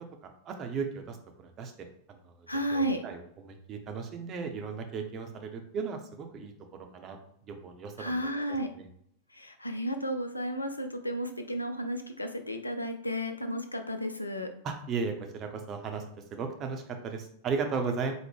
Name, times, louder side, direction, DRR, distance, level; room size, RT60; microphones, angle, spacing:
voice 1, 0.0-7.2 7.4-8.4 8.7-8.9 14.6-16.0 16.3-18.1, right 5 dB, 30° right, 5 dB, 0.6 m, -36 dB
voice 2, 2.5-3.0 8.0-8.7 9.3-14.5, equal, 85° left, 7 dB, 0.4 m, -33 dB
4.4 x 2.1 x 3.5 m, 0.69 s
figure-of-eight pair, 90°, 0 cm